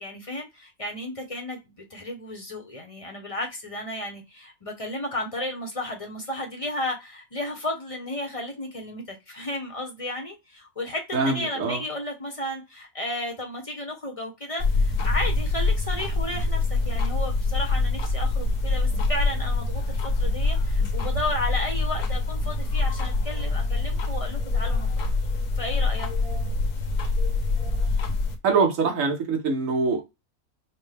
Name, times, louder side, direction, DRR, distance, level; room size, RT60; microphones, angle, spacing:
voice 1, 0.0-25.1 25.6-26.1, left 1 dB, 30° left, 0.8 m, -33 dB
voice 2, 11.1-11.8 28.4-30.2, right 4 dB, 60° right, 1.5 m, -24 dB
sound 1, 14.6-28.4, left 3 dB, 75° left, 1.4 m, -25 dB
6.0 x 2.2 x 3.4 m
omnidirectional pair, 1.6 m